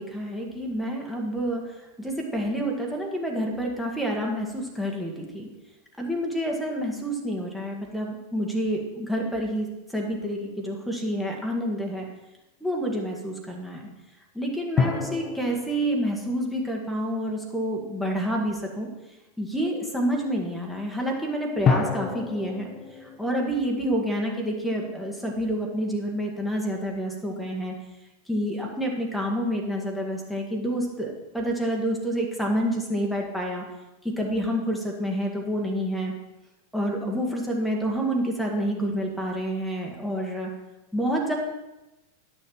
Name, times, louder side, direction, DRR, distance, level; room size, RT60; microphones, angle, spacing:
voice 1, 0.0-1.6 2.0-5.5 6.0-9.7 9.9-12.1 12.6-13.9 14.3-18.9 19.4-22.7 23.0-27.7 28.3-33.6 34.0-36.1 36.7-40.5 40.9-41.3, equal, ahead, -1 dB, 1.6 m, -28 dB
sound 1, 10.4-11.1 14.8-17.6 21.6-24.9, left 5 dB, 25° left, 0.9 m, -30 dB
11.0 x 6.5 x 4.6 m, 0.99 s
figure-of-eight pair, 90°, 0 cm